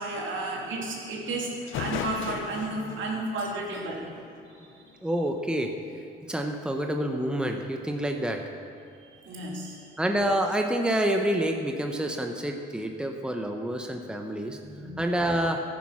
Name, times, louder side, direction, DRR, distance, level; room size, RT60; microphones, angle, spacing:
voice 1, 0.0-4.1 9.2-9.9 14.6-15.0, right 2 dB, 75° right, -1 dB, 2.8 m, -33 dB
sound 1, 1.3-1.4 1.7-5.1, left 8 dB, 85° left, 0.8 m, -38 dB
voice 2, 5.0-5.7 6.3-8.4 10.0-14.6 15.0-15.6, right 1 dB, 5° right, 3 dB, 1.1 m, -27 dB
14.0 x 9.7 x 5.8 m, 2.5 s
cardioid pair, 90°, 20 cm